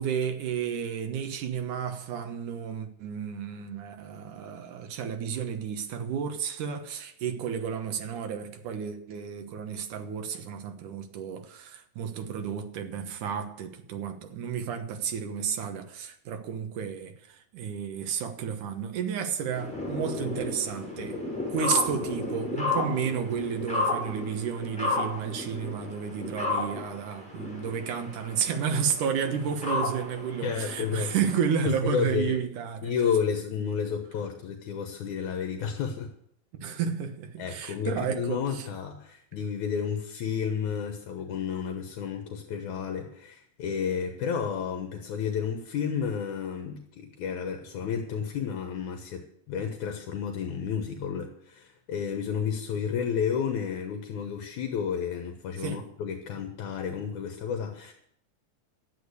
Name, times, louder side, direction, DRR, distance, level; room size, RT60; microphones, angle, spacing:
voice 1, 0.0-21.2 21.5-32.9 36.6-38.7 55.6-55.8, right 7 dB, 90° right, 2.8 m, -32 dB
sound 1, 19.5-31.4, left 2 dB, ahead, 5.4 m, -33 dB
voice 2, 30.4-31.1 31.8-32.4 32.8-36.1 37.4-57.9, left 7 dB, 75° left, 2.6 m, -31 dB
12.0 x 8.5 x 8.3 m
omnidirectional pair, 3.5 m